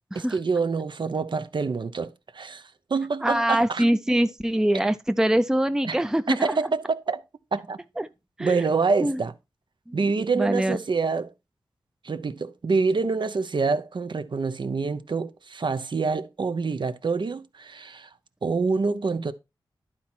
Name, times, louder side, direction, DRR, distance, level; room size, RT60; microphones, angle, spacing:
voice 1, 0.1-3.8 5.8-6.0 6.3-7.2 7.5-7.8 8.4-9.3 9.9-11.3 12.0-18.1 18.4-19.3, right 4 dB, 60° right, 0.8 m, -26 dB
voice 2, 3.2-6.5 8.0-8.1 8.4-8.6 9.0-9.2 9.9-10.0 10.4-10.8, right 1 dB, 5° right, 0.5 m, -23 dB
11.5 x 4.3 x 4.4 m
wide cardioid pair, 85°, 9 cm